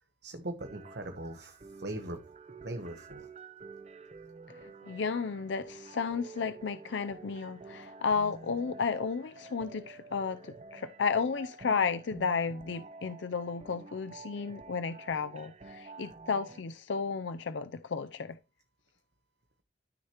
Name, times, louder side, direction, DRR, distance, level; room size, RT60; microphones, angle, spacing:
voice 1, 0.2-2.2 2.6-3.3, right 1 dB, 65° right, 1.0 m, -40 dB
sound 1, 0.6-16.6, right 3 dB, 35° right, 0.5 m, -50 dB
voice 2, 4.9-18.4, left 5 dB, 85° left, 0.5 m, -33 dB
13.0 x 6.4 x 2.9 m
head